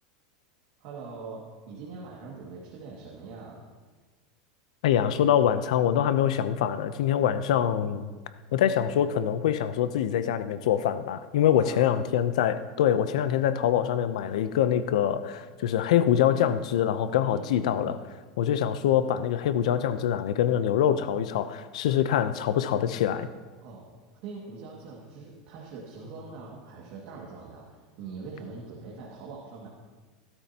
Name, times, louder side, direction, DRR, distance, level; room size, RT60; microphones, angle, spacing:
voice 1, 0.8-3.6 11.6-12.0 17.2-18.0 23.6-23.9 24.2-29.7, right 4 dB, 50° right, -4 dB, 2.1 m, -42 dB
voice 2, 4.8-8.1 8.5-18.0 18.4-23.3, left 10 dB, 85° left, 12 dB, 0.7 m, -24 dB
17.5 x 12.5 x 2.9 m, 1.4 s
supercardioid pair, 170°, 4 cm